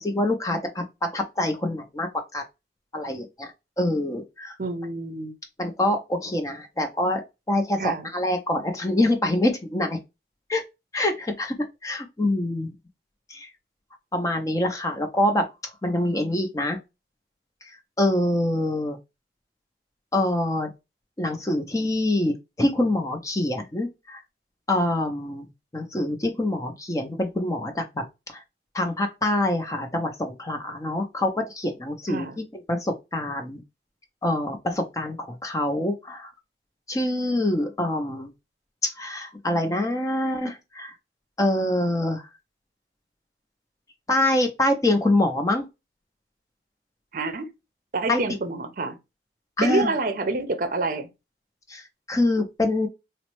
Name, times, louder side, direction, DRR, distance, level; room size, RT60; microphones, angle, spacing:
voice 1, 0.0-2.4 2.9-3.5 3.8-4.6 5.6-7.2 7.5-10.0 10.5-10.6 10.9-12.7 13.3-13.5 14.1-15.5 15.8-16.8 17.6-17.7 18.0-19.0 20.1-20.7 21.2-24.2 24.7-28.0 28.3-28.4 28.7-33.6 34.2-36.3 36.9-38.3 38.8-40.9 41.4-42.2 44.1-45.6 48.1-48.2 49.6-49.9 51.7-52.9, left 1 dB, 20° left, 0.5 m, -25 dB
voice 2, 4.6-5.3 7.8-8.1 32.1-32.4 47.1-47.5 47.9-49.0 49.6-51.1, right 3 dB, 50° right, 0.6 m, -27 dB
4.0 x 2.0 x 2.9 m
head